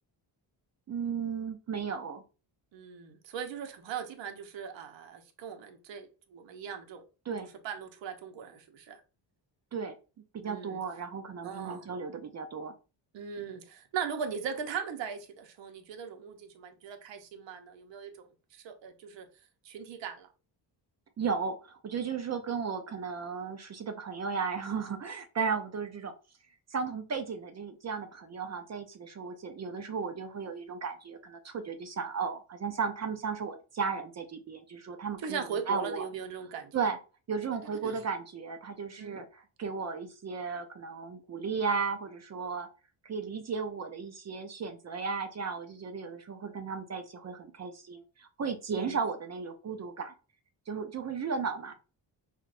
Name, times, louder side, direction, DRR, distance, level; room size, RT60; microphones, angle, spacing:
voice 1, 0.9-2.2 7.3-7.5 9.7-9.9 10.3-12.7 21.2-26.1 26.7-35.4 35.7-36.1 36.7-37.0 37.3-42.7 43.0-50.1 50.7-51.7, right 5 dB, 40° right, 0.4 m, -35 dB
voice 2, 2.7-7.0 7.4-9.0 10.4-10.8 11.4-11.9 13.1-18.3 18.5-19.3 19.6-20.3 35.2-36.7 37.8-38.0 39.0-39.2 48.8-49.0, right 7 dB, 70° right, 0.8 m, -39 dB
5.7 x 2.2 x 2.4 m
wide cardioid pair, 150°, 46 cm